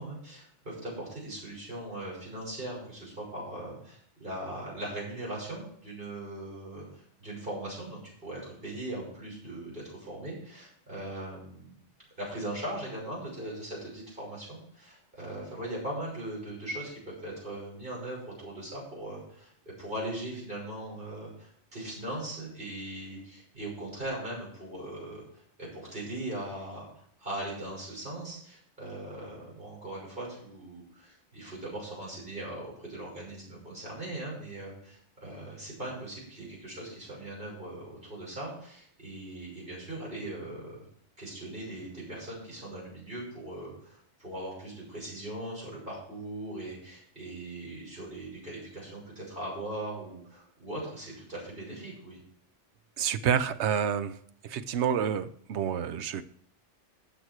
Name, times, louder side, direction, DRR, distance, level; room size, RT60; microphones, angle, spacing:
voice 1, 0.0-11.8 12.2-19.5 19.8-26.9 27.2-40.9 41.2-52.2, right 1 dB, 45° right, -5 dB, 6.6 m, -39 dB
voice 2, 53.0-54.2 54.4-56.2, right 8 dB, 70° right, 13 dB, 1.0 m, -28 dB
13.0 x 8.0 x 4.6 m, 0.65 s
omnidirectional pair, 1.2 m